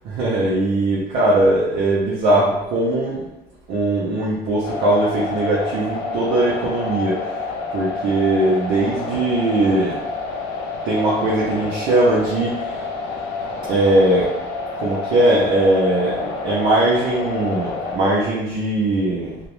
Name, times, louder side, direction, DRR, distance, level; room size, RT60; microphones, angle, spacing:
voice 1, 0.0-3.2 3.7-7.4 7.7-10.0 10.8-12.8 13.7-14.3 14.8-19.4, right 1 dB, 80° right, -6 dB, 0.6 m, -20 dB
sound 1, 4.6-18.0, left 3 dB, 85° left, 0.6 m, -28 dB
2.4 x 2.0 x 3.0 m, 0.96 s
cardioid pair, 110°, 17 cm